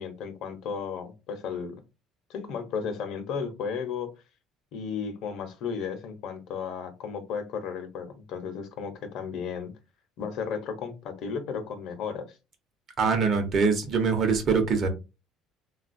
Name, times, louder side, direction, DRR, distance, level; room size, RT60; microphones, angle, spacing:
voice 1, 0.0-1.8 2.3-4.1 4.7-9.7 10.2-12.4, left 6 dB, 60° left, 0.8 m, -34 dB
voice 2, 13.0-14.9, right 5 dB, 40° right, 0.8 m, -23 dB
3.7 x 2.3 x 2.5 m
cardioid pair, 145°, 0 cm